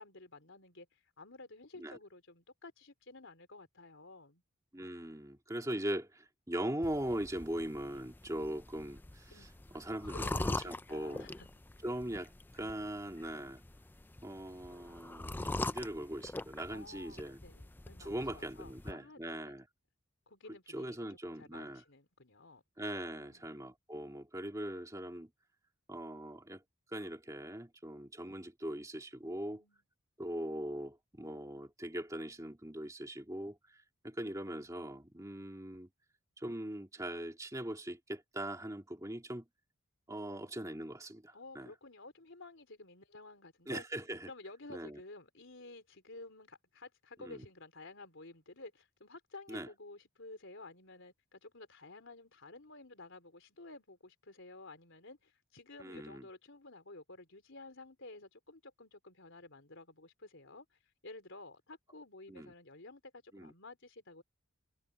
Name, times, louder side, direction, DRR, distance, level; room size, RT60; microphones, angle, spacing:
voice 1, 0.0-4.4 9.3-9.5 9.8-11.5 16.7-19.6 20.3-22.6 22.9-23.5 29.2-29.8 41.3-43.8 44.2-64.2, left 2 dB, 60° left, 4.4 m, -53 dB
voice 2, 4.7-11.3 11.8-13.6 14.2-17.4 18.0-19.7 20.7-21.8 22.8-25.3 25.9-26.6 26.9-29.6 30.2-35.9 36.4-39.4 40.1-41.7 43.7-44.3 44.7-45.0 47.2-47.4 49.5-49.7 55.8-56.3 62.3-62.5 63.3-63.5, right 1 dB, 15° right, 2.4 m, -41 dB
sound 1, 6.8-18.9, left 2 dB, 10° left, 0.3 m, -43 dB
head